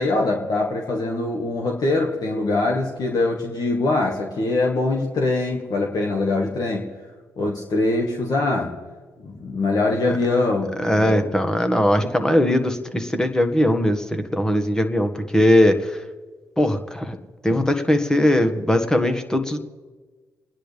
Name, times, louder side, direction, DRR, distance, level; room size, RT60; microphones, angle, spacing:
voice 1, 0.0-6.9 7.4-8.8 9.2-11.3, left 2 dB, 60° left, 0 dB, 1.8 m, -23 dB
voice 2, 10.8-16.0 16.6-17.2 17.4-19.6, left 1 dB, 10° left, 6 dB, 1.7 m, -20 dB
29.5 x 10.0 x 3.5 m, 1.4 s
supercardioid pair, 55°, 8 cm